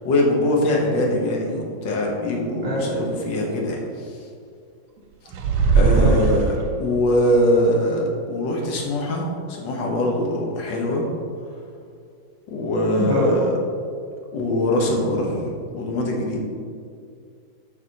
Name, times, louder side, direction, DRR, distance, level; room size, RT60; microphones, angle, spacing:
voice 1, 0.0-4.2 5.7-6.5 6.8-11.1 12.5-13.5 14.3-15.4 15.7-16.4, left 1 dB, 80° left, -1 dB, 1.7 m, -22 dB
sound 1, 5.3-7.0, right 5 dB, 80° right, 1.3 m, -19 dB
voice 2, 5.9-6.3 13.0-13.4, equal, 45° right, -4 dB, 1.8 m, -24 dB
8.9 x 4.9 x 2.8 m, 2.3 s
omnidirectional pair, 1.9 m